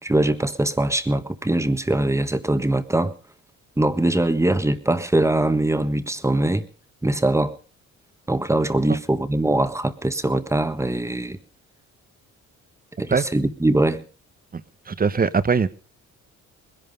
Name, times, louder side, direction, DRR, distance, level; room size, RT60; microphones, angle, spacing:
voice 1, 0.0-3.1 3.8-6.7 7.0-7.5 8.3-11.4 13.0-14.0, right 1 dB, 10° right, 1.4 m, -22 dB
voice 2, 14.9-15.7, right 5 dB, 30° right, 1.1 m, -21 dB
20.5 x 11.0 x 5.2 m
cardioid pair, 90°, 30 cm